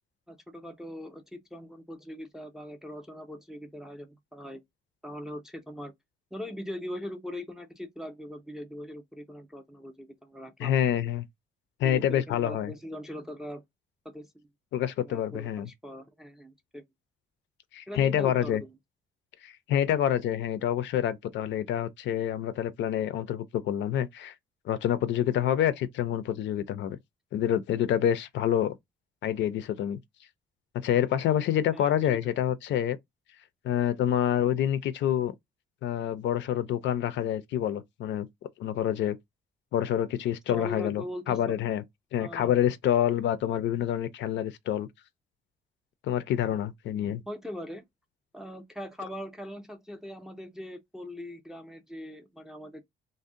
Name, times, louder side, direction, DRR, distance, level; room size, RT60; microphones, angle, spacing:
voice 1, 0.3-4.6 5.0-5.9 6.3-10.8 11.8-13.6 14.0-14.3 15.0-16.8 17.9-18.7 31.7-32.0 40.5-41.6 42.2-42.7 47.3-47.8 48.3-52.8, left 1 dB, 5° right, 0.4 m, -41 dB
voice 2, 10.6-11.3 11.8-12.7 14.7-15.7 17.7-18.6 19.4-24.3 24.7-27.0 27.3-28.8 29.2-30.0 30.8-33.0 33.6-35.3 35.8-38.3 38.6-39.2 39.7-41.8 42.1-44.9 46.0-47.2, left 10 dB, 65° left, 0.4 m, -27 dB
2.6 x 2.0 x 3.6 m
cardioid pair, 175°, 20 cm